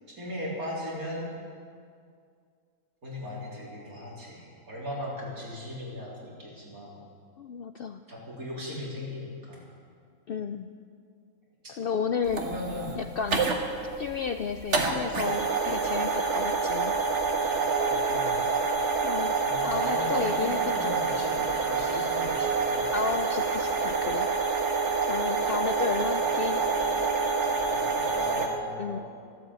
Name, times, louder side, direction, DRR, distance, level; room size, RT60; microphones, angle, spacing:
voice 1, 0.2-1.3 3.0-7.0 8.1-9.6 11.6-11.7 12.4-12.9 13.3-13.5 17.8-18.7 19.4-22.9 27.6-29.0, left 1 dB, 80° right, -5 dB, 4.3 m, -38 dB
voice 2, 7.4-8.0 10.3-10.7 11.7-12.5 13.0-13.5 14.0-16.9 19.0-19.3 19.6-20.9 22.9-24.3 25.1-26.6 28.8-29.0, left 6 dB, 65° left, 8 dB, 0.5 m, -32 dB
sound 1, 12.3-28.5, right 4 dB, 55° right, 1.6 m, -27 dB
14.0 x 12.5 x 8.3 m, 2.3 s
omnidirectional pair, 1.5 m